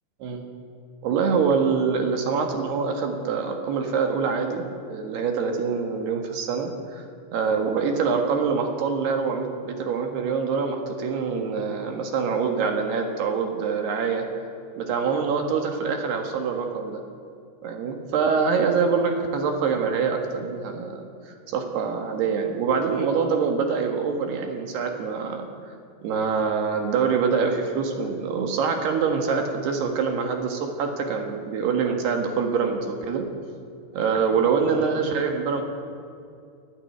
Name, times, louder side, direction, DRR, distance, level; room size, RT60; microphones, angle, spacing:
voice 1, 1.0-7.0 7.3-14.2 14.8-17.0 17.6-25.7 26.0-33.3 33.9-35.6, right 5 dB, 65° right, 3 dB, 3.3 m, -25 dB
29.5 x 10.0 x 9.3 m, 2.4 s
omnidirectional pair, 5.6 m